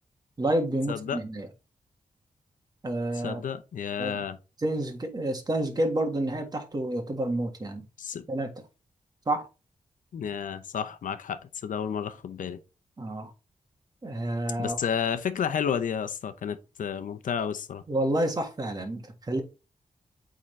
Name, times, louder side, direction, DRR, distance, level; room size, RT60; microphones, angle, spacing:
voice 1, 0.4-1.5 2.8-3.4 4.0-4.2 4.6-7.8 8.3-8.5 9.2-9.5 13.0-13.3 14.0-14.8 17.9-19.4, right 1 dB, 30° right, 1.6 m, -29 dB
voice 2, 0.9-1.2 3.1-4.4 8.0-8.3 10.1-12.6 14.6-17.8, left 7 dB, 85° left, 0.7 m, -31 dB
8.5 x 3.8 x 3.2 m
wide cardioid pair, 110°, 13 cm